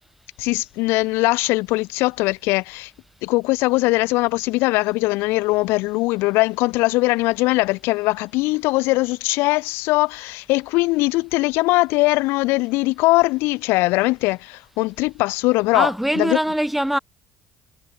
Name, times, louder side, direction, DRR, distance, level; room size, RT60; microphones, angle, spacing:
voice 1, 0.4-2.9 3.2-15.9 16.2-16.4, left 22 dB, 80° left, 3.4 m, -20 dB
voice 2, 15.7-17.0, equal, 5° right, 5.9 m, -22 dB
supercardioid pair, 80°, 4 cm